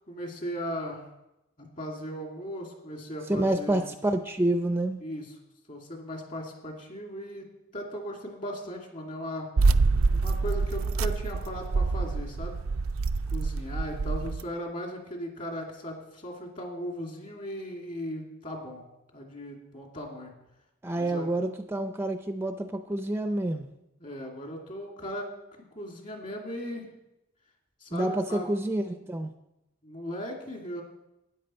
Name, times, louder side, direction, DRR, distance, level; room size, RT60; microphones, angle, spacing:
voice 1, 0.1-1.0 1.8-3.9 5.0-5.3 5.7-7.5 7.7-9.5 10.1-12.6 13.3-18.8 19.1-20.3 20.9-21.3 24.0-25.3 25.7-26.9 27.8-28.5 29.8-30.8, equal, 40° left, 1 dB, 2.6 m, -37 dB
voice 2, 3.3-5.0 20.8-23.7 27.9-29.3, right 1 dB, 10° right, 7 dB, 0.5 m, -28 dB
sound 1, 9.6-14.4, right 3 dB, 85° right, 0.4 m, -26 dB
13.0 x 9.7 x 4.4 m, 0.90 s
head